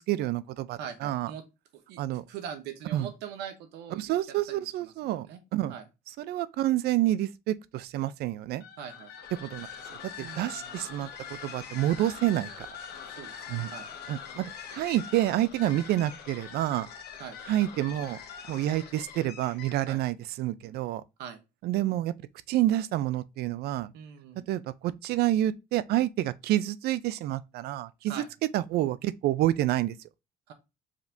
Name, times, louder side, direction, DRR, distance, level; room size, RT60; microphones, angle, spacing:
voice 1, 0.0-1.3 2.0-2.2 2.9-3.1 4.0-5.3 5.5-5.7 6.2-8.6 9.4-9.7 10.0-12.7 13.5-13.7 14.1-16.9 17.5-18.2 18.5-21.0 21.6-22.1 22.5-23.9 24.5-28.2 28.5-30.0, right 14 dB, 70° right, 0.4 m, -28 dB
voice 2, 0.8-1.4 1.7-4.1 4.5-4.9 5.2-5.4 5.7-5.8 8.8-9.1 10.2-10.7 13.0-13.9 17.2-17.4 19.9-20.0 21.2-21.4 23.9-24.5 28.1-28.3 30.5-30.6, right 8 dB, 90° right, 0.9 m, -42 dB
sound 1, 8.6-20.0, left 7 dB, 70° left, 1.2 m, -43 dB
5.0 x 3.5 x 2.6 m
cardioid pair, 110°, 17 cm